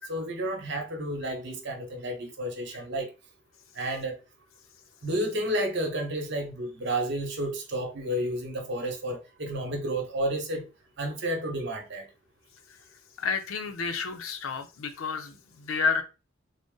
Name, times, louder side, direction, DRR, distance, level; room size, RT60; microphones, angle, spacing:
voice 1, 0.1-3.1 3.8-4.2 5.0-10.7 11.0-12.0, right 1 dB, 60° right, 1.0 m, -31 dB
voice 2, 13.2-16.0, left 5 dB, 85° left, 0.5 m, -30 dB
3.8 x 2.1 x 3.7 m
head